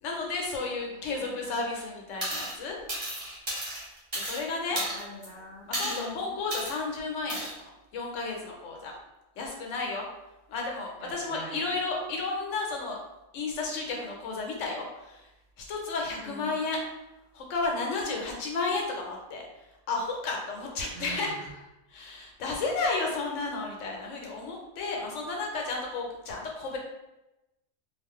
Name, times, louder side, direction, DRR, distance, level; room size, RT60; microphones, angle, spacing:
voice 1, 0.0-2.8 4.1-4.8 5.7-8.9 9.4-10.1 10.5-13.0 13.3-15.3 15.6-16.8 17.3-19.4 19.9-21.3 21.9-26.8, left 3 dB, 90° left, 0 dB, 1.0 m, -32 dB
voice 2, 0.9-1.9 4.7-6.4 11.0-11.6 16.2-16.6 20.9-21.6, equal, 35° left, -3 dB, 0.7 m, -44 dB
sound 1, 2.2-2.6 2.9-4.4 4.8-5.3 5.7-6.0 6.5-6.7 7.3-7.5, right 1 dB, 30° right, 1.0 m, -33 dB
2.4 x 2.2 x 3.6 m, 0.97 s
omnidirectional pair, 1.2 m